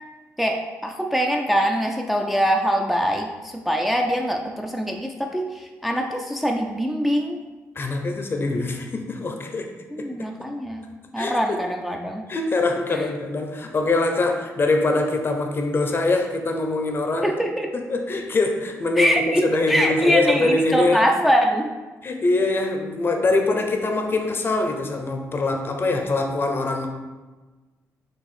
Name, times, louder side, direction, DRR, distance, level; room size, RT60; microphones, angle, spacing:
voice 1, 0.4-7.4 9.9-10.9 11.1-12.3 12.9-13.0 17.2-17.7 19.0-21.7, equal, 5° right, 2 dB, 0.4 m, -23 dB
voice 2, 7.8-9.7 10.0-10.3 11.2-11.6 12.3-17.3 17.9-21.0 22.0-26.9, left 2 dB, 40° left, 4 dB, 0.6 m, -23 dB
4.6 x 2.5 x 4.2 m, 1.3 s
cardioid pair, 80°, 6 cm